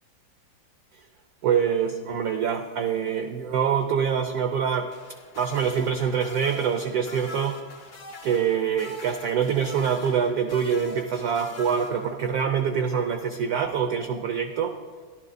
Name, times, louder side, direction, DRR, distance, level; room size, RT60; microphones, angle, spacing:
voice 1, 1.4-4.9 5.4-7.6 8.2-14.7, right 7 dB, 80° right, 6 dB, 0.8 m, -25 dB
sound 1, 4.9-12.5 13.8-14.0, left 1 dB, 75° left, 0.4 m, -44 dB
13.5 x 11.5 x 2.6 m, 1.5 s
omnidirectional pair, 2.2 m